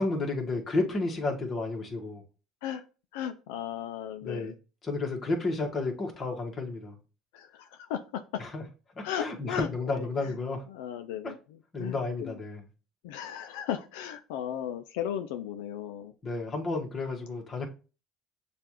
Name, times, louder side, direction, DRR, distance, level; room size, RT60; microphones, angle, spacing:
voice 1, 0.0-2.2 4.2-4.5 4.8-6.9 8.4-8.6 9.0-10.6 11.2-11.3 11.7-12.6 16.2-17.7, left 3 dB, 35° left, 1.3 m, -31 dB
voice 2, 3.1-4.5 7.3-8.4 9.0-10.3 10.7-12.3 13.0-16.1, left 10 dB, 90° left, 0.4 m, -36 dB
6.7 x 2.4 x 2.9 m
supercardioid pair, 95°, 0 cm